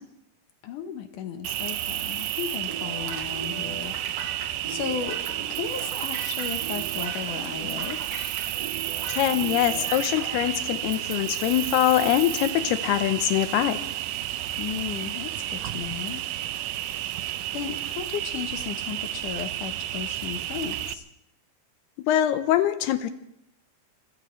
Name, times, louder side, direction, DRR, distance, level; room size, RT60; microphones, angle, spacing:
voice 1, 0.6-4.0 4.7-8.0 14.6-16.2 17.5-21.0, left 8 dB, 70° left, 7 dB, 2.1 m, -35 dB
Cricket, 1.4-20.9, right 13 dB, 85° right, 1.8 m, -31 dB
sound 1, 2.7-10.5, right 5 dB, 40° right, 4.1 m, -39 dB
voice 2, 9.1-13.8 22.1-23.1, left 12 dB, 85° left, 11 dB, 2.9 m, -23 dB
27.0 x 16.5 x 3.2 m, 0.78 s
omnidirectional pair, 4.6 m